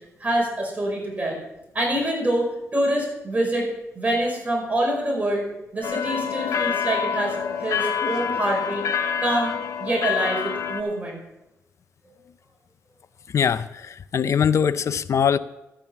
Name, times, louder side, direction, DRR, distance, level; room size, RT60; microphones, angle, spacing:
voice 1, 0.2-1.4 1.7-2.5 2.7-3.7 4.0-5.4 5.7-8.8 9.2-9.5 9.8-11.2 12.1-12.2, right 1 dB, 25° right, -1 dB, 5.2 m, -25 dB
sound 1, 5.8-10.8, left 7 dB, 80° left, 1.4 m, -27 dB
voice 2, 13.3-15.4, left 7 dB, 60° left, 15 dB, 0.5 m, -22 dB
12.5 x 9.0 x 5.7 m, 0.93 s
cardioid pair, 80°, 6 cm